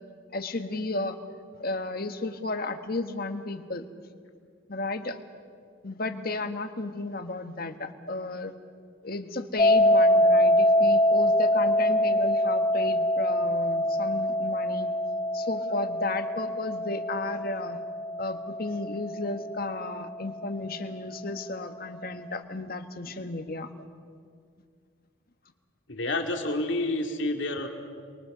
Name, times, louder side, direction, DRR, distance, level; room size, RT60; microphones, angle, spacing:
voice 1, 0.3-1.2 1.5-3.9 4.7-5.2 5.8-8.5 9.0-15.0 15.3-17.8 18.2-23.7, left 2 dB, 50° left, 8 dB, 1.5 m, -33 dB
sound 1, 9.6-20.5, left 1 dB, 25° left, 1.7 m, -24 dB
voice 2, 25.9-27.7, left 2 dB, 65° left, 4 dB, 2.6 m, -29 dB
29.5 x 22.5 x 6.8 m, 2.1 s
head